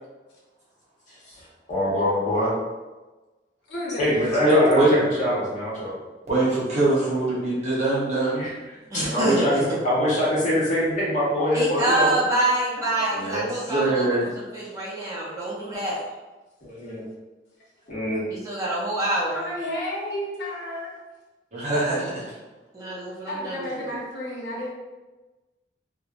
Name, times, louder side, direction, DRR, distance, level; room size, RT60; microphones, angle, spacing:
voice 1, 1.1-2.5 4.0-4.8 5.2-5.9 8.4-8.5 8.9-12.1 16.6-17.0 17.9-18.2, equal, 40° left, -7 dB, 1.0 m, -24 dB
voice 2, 3.7-4.2 19.3-20.9 23.3-24.7, left 1 dB, 70° left, -5 dB, 0.8 m, -31 dB
voice 3, 4.4-5.0 6.3-8.5 9.0-9.1 13.1-14.3 21.5-22.3, right 1 dB, 40° right, -7 dB, 0.9 m, -22 dB
voice 4, 8.9-9.6 11.5-14.1 14.3-16.0 18.3-19.5 22.7-23.9, right 1 dB, 20° right, -6 dB, 0.5 m, -26 dB
3.0 x 2.1 x 2.4 m, 1.2 s
head